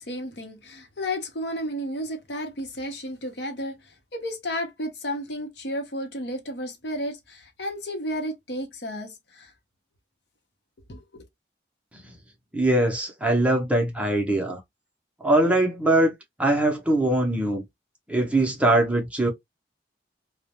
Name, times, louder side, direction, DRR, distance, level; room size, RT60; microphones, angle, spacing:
voice 1, 0.0-9.5 10.9-11.2, equal, 65° left, 0.7 m, -33 dB
voice 2, 12.5-14.6 15.2-16.1 16.4-17.6 18.1-19.3, right 1 dB, 5° right, 0.5 m, -22 dB
2.3 x 2.1 x 2.8 m
head